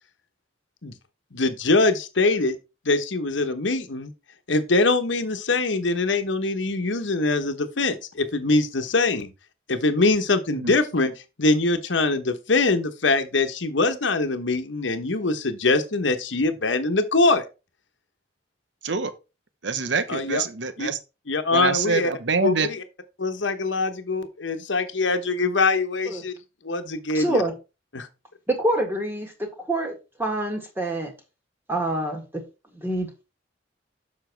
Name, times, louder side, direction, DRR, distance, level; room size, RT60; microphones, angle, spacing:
voice 1, 1.3-2.6 2.8-4.1 4.5-9.3 9.7-11.1 11.4-17.5 20.1-20.4 20.8-20.9 21.3-22.1 22.4-22.8 23.2-26.3 26.6-27.4 27.9-28.1, left 3 dB, 75° left, 1.1 m, -23 dB
voice 2, 19.6-21.0 21.5-22.7, right 4 dB, 65° right, 0.9 m, -25 dB
voice 3, 27.1-27.5 28.5-31.1 31.7-32.4 32.7-33.1, right 1 dB, 10° right, 1.9 m, -26 dB
7.2 x 5.6 x 4.5 m
head